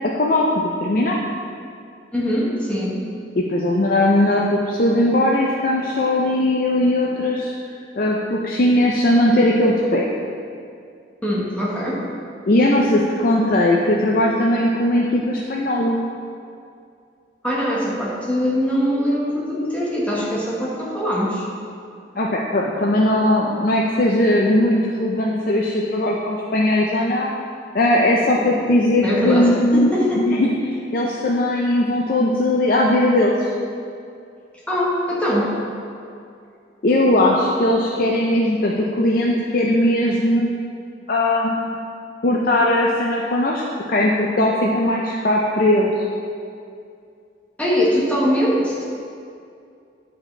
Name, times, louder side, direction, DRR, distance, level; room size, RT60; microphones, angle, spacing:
voice 1, 0.0-1.2 3.4-7.5 8.0-10.1 12.5-16.0 22.2-27.3 27.7-33.5 36.8-40.5 41.1-41.7 42.2-43.6 43.9-46.0, left 1 dB, 50° left, -2 dB, 0.5 m, -19 dB
voice 2, 2.1-3.0 11.2-12.0 17.4-21.4 29.0-30.4 34.7-35.6 47.6-48.8, equal, 5° left, -6 dB, 1.2 m, -22 dB
9.1 x 4.9 x 3.2 m, 2.4 s
head